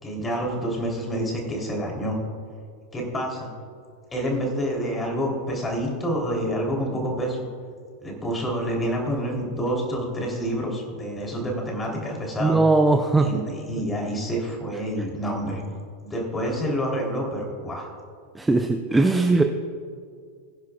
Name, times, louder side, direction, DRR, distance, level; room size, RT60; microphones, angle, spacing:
voice 1, 0.0-2.2 2.9-3.5 4.1-7.4 8.0-12.6 13.2-15.6 16.0-17.9, equal, 15° left, 0 dB, 3.2 m, -28 dB
voice 2, 12.4-13.4 18.3-19.4, right 3 dB, 10° right, 5 dB, 0.6 m, -19 dB
20.5 x 10.5 x 2.4 m, 2.2 s
figure-of-eight pair, 90°, 0 cm